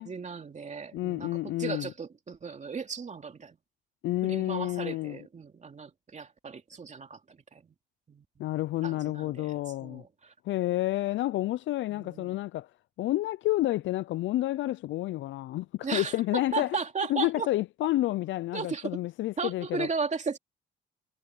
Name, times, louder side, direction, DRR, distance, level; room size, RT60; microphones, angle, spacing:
voice 1, 0.0-1.3 1.6-3.6 4.2-7.7 8.1-8.2 8.8-10.3 11.9-12.4 15.8-17.5 18.5-19.0 19.4-20.4, right 5 dB, 35° right, 2.7 m, -36 dB
voice 2, 0.9-1.9 4.0-5.2 8.4-10.0 10.5-12.7 13.0-16.8 17.1-19.9, left 16 dB, 70° left, 0.4 m, -30 dB
cardioid pair, 90°, 20 cm